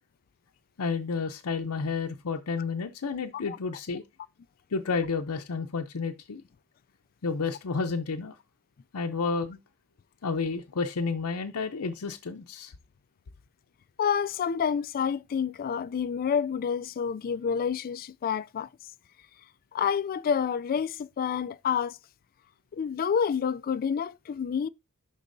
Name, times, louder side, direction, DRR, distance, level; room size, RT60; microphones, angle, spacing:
voice 1, 0.8-4.0 4.7-6.4 7.2-8.3 8.9-9.6 10.2-12.7, left 4 dB, 80° left, 0.6 m, -31 dB
voice 2, 14.0-18.7 19.7-22.0 22.7-24.7, left 7 dB, 40° left, 0.3 m, -28 dB
11.5 x 3.9 x 2.6 m
head